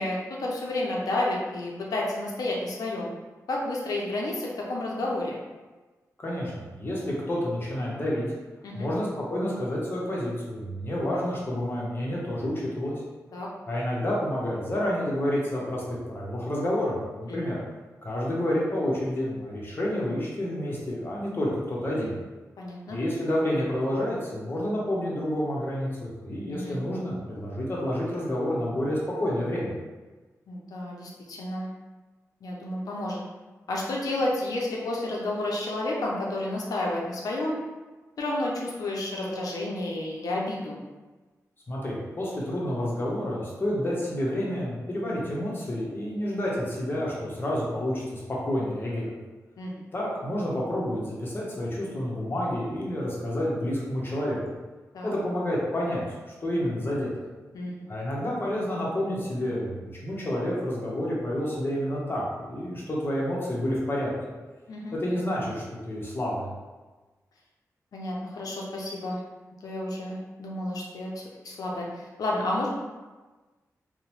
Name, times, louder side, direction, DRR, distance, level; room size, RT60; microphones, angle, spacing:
voice 1, 0.0-3.1 3.5-5.4 8.6-8.9 13.3-13.5 17.3-17.5 22.6-23.0 26.5-26.8 30.5-31.7 32.4-33.2 33.7-37.6 38.2-40.8 49.6-49.9 54.9-55.1 57.5-57.9 64.7-65.0 67.9-69.2 69.6-72.7, left 1 dB, 85° left, -3 dB, 0.5 m, -31 dB
voice 2, 6.2-8.3 8.7-13.0 13.7-15.8 16.1-17.6 18.0-22.1 22.9-29.7 41.7-49.2 49.9-54.4 55.0-56.0 56.4-57.3 57.9-59.7 60.0-64.1 64.9-66.5, left 1 dB, 35° left, -5 dB, 0.8 m, -29 dB
2.8 x 2.0 x 2.9 m, 1.2 s
wide cardioid pair, 90°, 6 cm